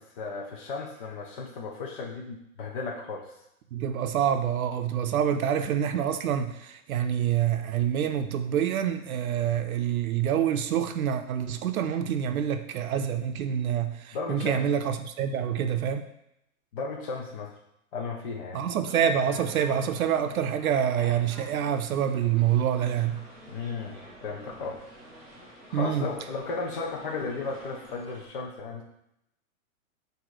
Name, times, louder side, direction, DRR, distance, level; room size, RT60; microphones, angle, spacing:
voice 1, 0.0-3.4 14.1-14.6 16.7-17.6 17.9-18.6 23.5-24.8 25.7-28.8, left 4 dB, 35° left, -1 dB, 0.7 m, -35 dB
voice 2, 3.7-16.1 18.5-23.2 25.7-26.1, right 9 dB, 75° right, 7 dB, 0.6 m, -26 dB
sound 1, 18.8-28.3, right 1 dB, ahead, 0.7 m, -47 dB
7.5 x 2.8 x 4.8 m, 0.81 s
hypercardioid pair, 170°, 43 cm